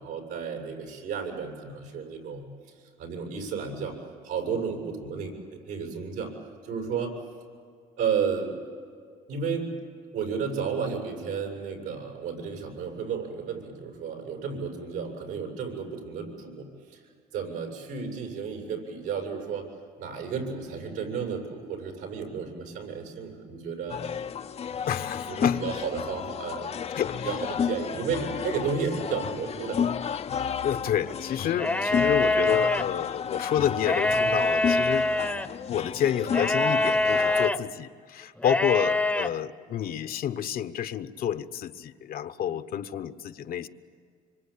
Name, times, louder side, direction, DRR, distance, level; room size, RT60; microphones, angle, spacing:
voice 1, 0.0-2.4 3.0-4.0 4.2-6.3 6.6-7.1 8.0-8.7 9.3-9.7 10.1-17.0 17.3-19.7 20.0-24.0 24.7-24.8 25.2-26.8 27.2-30.2, right 6 dB, 85° right, 2 dB, 7.3 m, -32 dB
sound 1, 23.9-37.5, left 7 dB, 40° left, 0.7 m, -32 dB
voice 2, 24.9-25.6 26.9-27.3 30.6-35.1 35.7-43.7, left 10 dB, 60° left, 10 dB, 1.1 m, -29 dB
sound 2, 31.5-32.8 33.8-35.5 36.3-37.6 38.4-39.3, left 2 dB, 5° left, 0.9 m, -24 dB
26.0 x 25.0 x 8.8 m, 2.1 s
cardioid pair, 110°, 17 cm